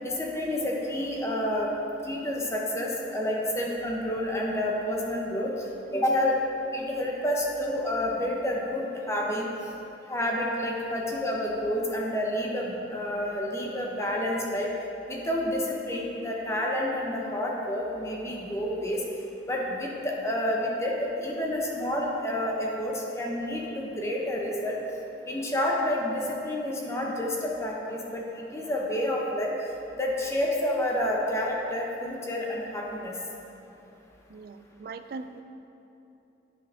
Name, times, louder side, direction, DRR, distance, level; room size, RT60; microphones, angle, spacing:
voice 1, 0.0-1.7 2.0-5.5 5.9-6.4 6.7-9.5 10.1-14.7 15.1-19.0 19.5-24.8 25.3-29.5 30.0-33.2, left 1 dB, 15° left, -2 dB, 0.7 m, -29 dB
voice 2, 34.3-35.4, right 4 dB, 55° right, 10 dB, 0.3 m, -40 dB
9.6 x 5.7 x 3.6 m, 3.0 s
head